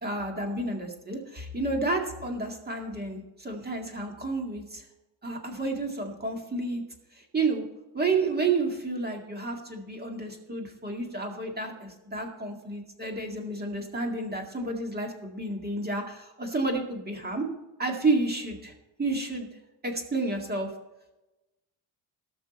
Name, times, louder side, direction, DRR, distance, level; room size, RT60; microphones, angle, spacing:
voice 1, 0.0-4.8 5.2-6.8 7.1-7.6 7.9-17.5 17.8-18.7 19.0-19.5 19.8-20.7, right 3 dB, 20° right, 2 dB, 2.1 m, -30 dB
18.5 x 6.1 x 4.3 m, 1.0 s
cardioid pair, 150°, 46 cm